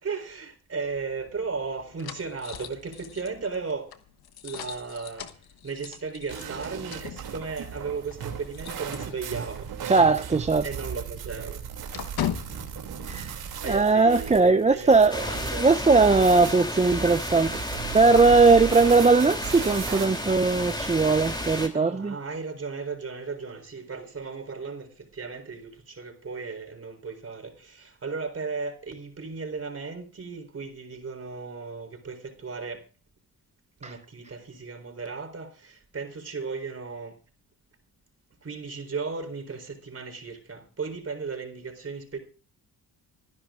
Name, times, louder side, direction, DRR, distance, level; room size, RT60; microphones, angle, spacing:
voice 1, 0.0-3.9 4.4-5.3 5.6-9.7 10.6-11.6 13.6-15.7 21.7-32.8 33.8-37.1 38.4-42.2, right 4 dB, 40° right, 4.2 m, -35 dB
sound 1, 0.8-9.7 10.0-10.1 10.5-13.9, left 10 dB, 80° left, 1.2 m, -40 dB
sound 2, 6.3-20.1, right 8 dB, 90° right, 2.8 m, -37 dB
voice 2, 9.8-10.6 13.1-13.3 13.7-15.2 15.6-17.6 17.9-22.1, right 3 dB, 20° right, 0.6 m, -19 dB
sound 3, 15.1-21.7, left 1 dB, 10° left, 3.1 m, -32 dB
26.5 x 11.0 x 2.5 m
cardioid pair, 80°, 37 cm